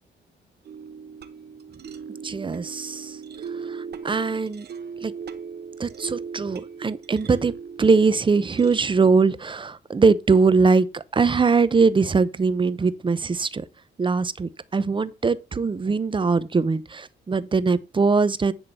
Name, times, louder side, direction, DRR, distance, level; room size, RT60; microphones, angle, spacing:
sound 1, 0.6-9.2, right 6 dB, 55° right, 1.1 m, -38 dB
voice 1, 2.2-3.2 3.6-4.7 5.0-5.1 5.8-7.5 7.8-13.6 14.0-18.5, right 4 dB, 25° right, 0.8 m, -21 dB
10.5 x 3.9 x 6.9 m
cardioid pair, 90°, 20 cm